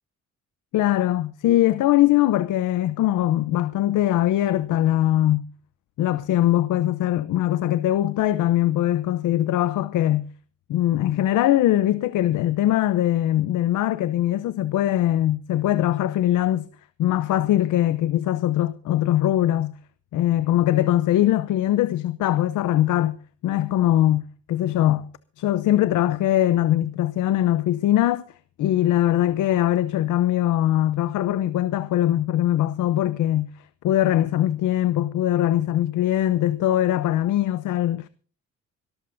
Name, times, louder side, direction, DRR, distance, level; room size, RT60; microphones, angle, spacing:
voice 1, 0.7-5.5 6.0-10.3 10.7-16.7 17.0-19.7 20.1-23.2 23.4-25.1 25.4-28.2 28.6-33.5 33.8-38.1, left 13 dB, 80° left, 0.8 m, -21 dB
25.5 x 13.5 x 2.7 m
cardioid pair, 90°, 30 cm